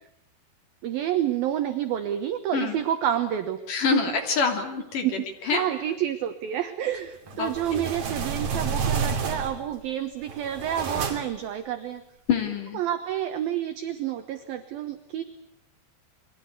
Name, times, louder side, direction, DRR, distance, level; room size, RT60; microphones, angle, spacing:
voice 1, 0.8-4.0 5.0-12.0 12.7-15.2, right 11 dB, 70° right, 8 dB, 2.3 m, -29 dB
voice 2, 3.7-5.6 7.4-7.8 12.3-12.8, left 6 dB, 45° left, 6 dB, 3.9 m, -26 dB
sound 1, 7.3-9.7 10.2-11.5, right 5 dB, 50° right, 4.1 m, -30 dB
29.0 x 23.0 x 8.3 m, 0.77 s
omnidirectional pair, 5.8 m